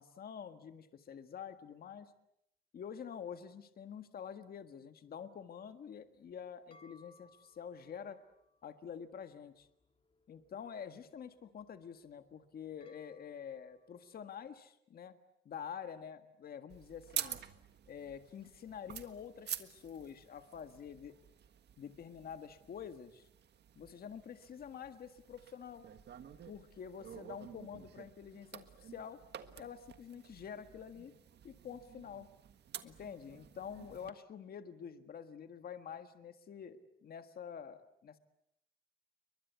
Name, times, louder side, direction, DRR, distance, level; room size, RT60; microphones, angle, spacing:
voice 1, 0.0-2.1 2.7-8.2 8.6-9.7 10.3-15.2 15.4-17.4 17.9-21.1 21.8-23.3 23.7-25.8 26.5-29.2 29.6-31.1 31.4-32.3 32.8-38.2, left 7 dB, 50° left, 9 dB, 1.7 m, -47 dB
sound 1, 6.1-14.6, left 2 dB, 30° left, 1.9 m, -69 dB
sound 2, 16.7-34.1, right 9 dB, 60° right, 1.6 m, -49 dB
29.5 x 23.5 x 8.2 m, 0.77 s
cardioid pair, 155°, 20 cm